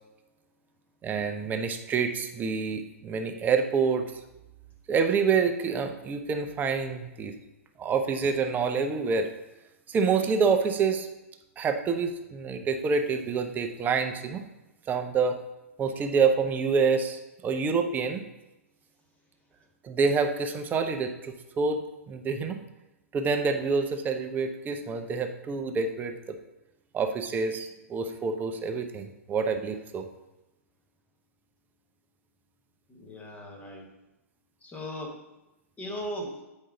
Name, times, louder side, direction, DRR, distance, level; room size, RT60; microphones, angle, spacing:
voice 1, 1.0-4.0 4.9-7.3 7.8-9.3 9.9-11.1 11.6-14.4 14.9-15.4 15.8-18.2 19.8-21.8 22.1-22.6 23.1-26.4 26.9-30.1, right 5 dB, 20° right, 6 dB, 0.8 m, -27 dB
voice 2, 32.9-33.9 34.6-35.2 35.8-36.4, equal, 15° left, 2 dB, 1.5 m, -37 dB
7.8 x 5.4 x 3.7 m, 0.98 s
hypercardioid pair, 115°, 8 cm